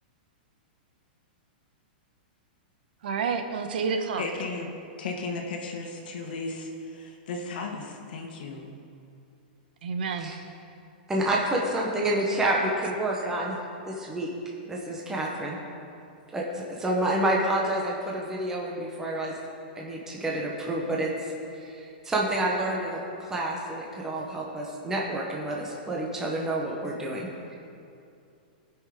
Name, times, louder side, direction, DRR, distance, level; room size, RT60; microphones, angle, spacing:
voice 1, 3.0-4.3 9.8-10.3, right 5 dB, 70° right, 6 dB, 1.1 m, -29 dB
voice 2, 4.2-4.7 5.0-8.7, left 3 dB, 65° left, 2 dB, 1.5 m, -35 dB
voice 3, 11.1-13.6 13.8-14.3 14.6-15.6 16.3-19.3 19.7-21.1 21.5-27.5, right 1 dB, 10° right, -2 dB, 1.1 m, -29 dB
17.5 x 6.1 x 5.0 m, 2.5 s
supercardioid pair, 155°, 5 cm